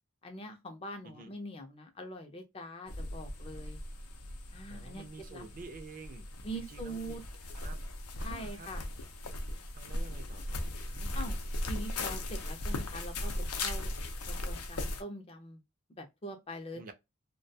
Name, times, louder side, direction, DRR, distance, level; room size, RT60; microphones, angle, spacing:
voice 1, 0.2-3.8 4.5-5.0 5.3-5.4 6.4-7.2 8.2-8.9 11.1-11.4 11.7-13.9 14.3-15.6 16.0-16.9, right 1 dB, 25° left, 0.4 m, -43 dB
sound 1, 2.9-15.0, left 1 dB, 90° left, 0.6 m, -38 dB
voice 2, 4.7-6.3 6.5-7.2 7.5-7.8 8.2-8.7 9.7-11.2 16.7-16.9, right 3 dB, 40° right, 0.4 m, -49 dB
2.3 x 2.2 x 2.6 m
head